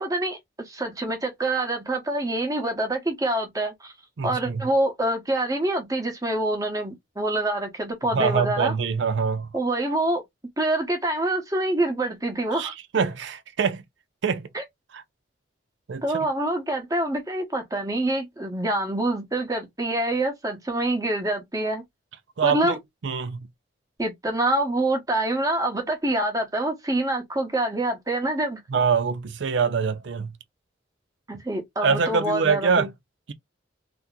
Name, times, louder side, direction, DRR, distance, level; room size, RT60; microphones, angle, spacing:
voice 1, 0.0-3.9 4.2-8.7 9.5-10.2 10.6-12.7 14.5-14.6 16.0-21.8 22.4-22.8 24.0-28.6 31.3-32.9, right 1 dB, 20° right, 1.0 m, -26 dB
voice 2, 4.2-4.6 8.1-9.5 12.5-13.8 14.2-14.5 15.9-16.0 22.4-22.8 23.0-23.5 28.7-30.3 31.8-32.9, right 5 dB, 75° right, 0.5 m, -24 dB
2.9 x 2.1 x 3.6 m
head